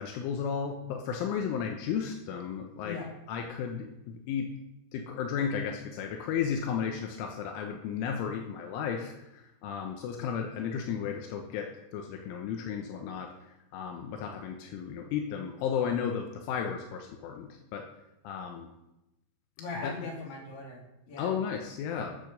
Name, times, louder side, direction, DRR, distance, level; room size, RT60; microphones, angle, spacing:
voice 1, 0.0-3.0 3.3-3.9 4.3-4.5 4.9-11.7 11.9-13.3 13.7-17.8 18.3-18.7 19.8-19.9 21.2-22.2, left 7 dB, 85° left, 3 dB, 3.4 m, -33 dB
voice 2, 2.8-3.2 19.6-21.3, left 3 dB, 50° left, -2 dB, 4.5 m, -40 dB
14.0 x 6.9 x 6.8 m, 0.90 s
omnidirectional pair, 5.7 m